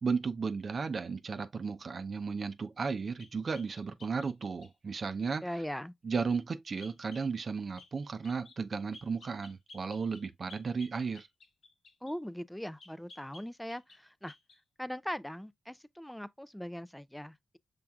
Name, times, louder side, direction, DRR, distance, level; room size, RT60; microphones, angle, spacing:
voice 1, 0.0-5.4 6.0-11.3, right 5 dB, 55° right, 0.6 m, -34 dB
sound 1, 2.8-4.7 6.8-7.3 7.8-7.9 8.2-8.6 8.9-12.2 12.8-14.0 14.3-14.6, left 2 dB, 80° left, 1.5 m, -55 dB
voice 2, 5.4-5.9 12.0-14.3 14.8-17.6, equal, 5° left, 0.4 m, -40 dB
5.6 x 3.5 x 2.3 m
cardioid pair, 55°, 0 cm